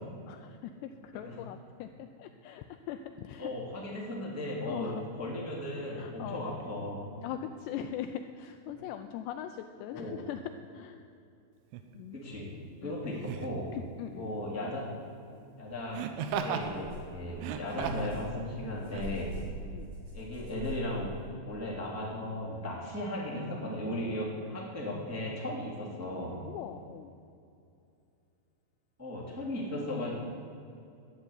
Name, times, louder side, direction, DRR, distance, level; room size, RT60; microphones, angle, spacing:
voice 1, 0.3-3.5 4.6-5.0 5.9-6.5 7.2-11.0 11.9-13.2 13.7-14.3 19.7-19.9 26.4-27.1, left 10 dB, 85° left, 7 dB, 2.5 m, -41 dB
voice 2, 3.4-7.1 9.9-10.2 12.1-12.5 12.8-13.7 14.1-14.9 15.6-16.1 16.4-19.4 20.1-21.2 21.4-26.4 29.0-30.1, left 1 dB, 5° right, -5 dB, 1.4 m, -36 dB
Laughter, 11.7-11.9 13.2-13.6 15.9-16.7 17.3-18.2 18.9-19.0, right 7 dB, 85° right, 3.3 m, -35 dB
sound 1, 15.7-15.8 16.2-21.3, equal, 55° right, 6.0 m, -44 dB
12.5 x 8.8 x 9.6 m, 2.6 s
omnidirectional pair, 5.4 m